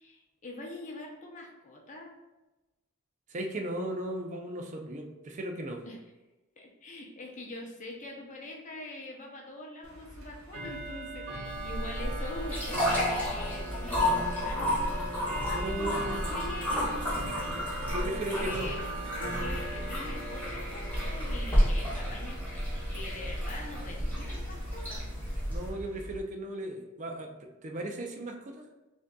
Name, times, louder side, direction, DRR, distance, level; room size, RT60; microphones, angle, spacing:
voice 1, 0.0-2.2 5.9-6.0 6.6-17.6 18.0-18.8 19.2-25.1, left 2 dB, 35° left, -1 dB, 0.6 m, -43 dB
voice 2, 3.3-5.8 15.5-16.3 17.5-18.7 25.5-28.7, right 1 dB, 35° right, 3 dB, 0.4 m, -36 dB
Bell / Tick-tock, 9.8-26.2, right 2 dB, 70° right, 0.9 m, -40 dB
sound 1, 11.5-25.7, left 1 dB, 10° left, 1.3 m, -32 dB
6.1 x 2.6 x 2.3 m, 1.1 s
head